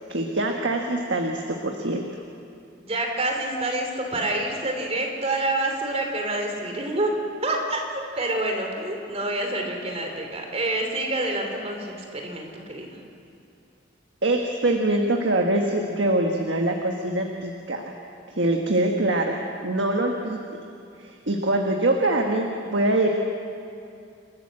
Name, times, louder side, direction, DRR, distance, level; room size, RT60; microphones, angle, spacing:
voice 1, 0.1-2.0 14.2-17.9 18.3-19.4 19.6-20.4 21.0-23.1, right 1 dB, 70° right, 2 dB, 1.4 m, -24 dB
voice 2, 2.8-7.1 7.4-13.0, right 2 dB, 35° right, 2 dB, 3.0 m, -27 dB
28.0 x 13.5 x 7.5 m, 2.5 s
head